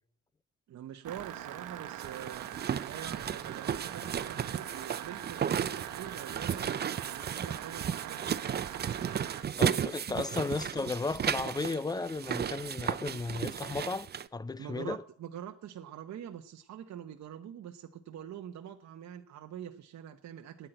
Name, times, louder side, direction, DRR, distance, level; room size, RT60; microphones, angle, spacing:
voice 1, 0.7-2.5 2.8-8.5 14.6-20.7, right 10 dB, 65° right, 1.0 m, -45 dB
sound 1, 1.0-9.4, right 12 dB, 90° right, 1.1 m, -42 dB
sound 2, 2.0-14.3, right 8 dB, 35° right, 0.5 m, -34 dB
voice 2, 9.6-14.1 14.3-15.0, left 3 dB, 15° left, 0.5 m, -34 dB
10.0 x 9.4 x 9.1 m
cardioid pair, 90°, 30 cm